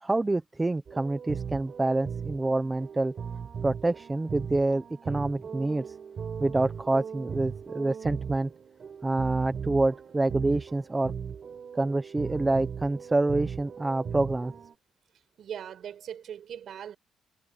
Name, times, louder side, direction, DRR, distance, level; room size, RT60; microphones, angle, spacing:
voice 1, 0.0-3.1 3.6-5.8 6.4-8.5 9.0-11.1 11.7-14.5, right 2 dB, 20° right, 1.0 m, -27 dB
sound 1, 0.9-14.7, right 6 dB, 50° right, 7.6 m, -38 dB
voice 2, 15.4-17.0, right 9 dB, 65° right, 5.6 m, -40 dB
cardioid pair, 90°, 0 cm